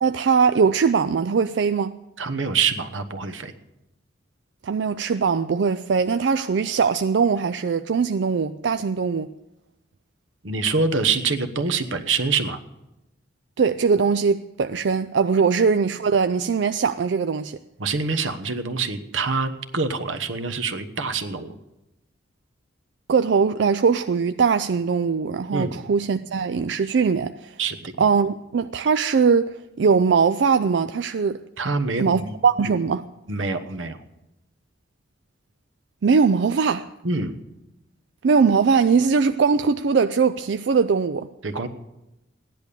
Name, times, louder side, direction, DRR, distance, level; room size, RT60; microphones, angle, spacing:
voice 1, 0.0-2.0 4.6-9.3 13.6-17.6 23.1-27.6 28.0-31.4 32.0-33.0 36.0-36.9 38.2-41.3, right 5 dB, 65° right, 0.4 m, -21 dB
voice 2, 2.2-3.5 10.4-12.6 17.8-21.5 25.5-25.8 27.6-28.1 31.6-32.3 33.3-34.0 37.0-37.4 41.4-41.7, right 4 dB, 90° right, 1.1 m, -25 dB
15.0 x 10.5 x 6.9 m
head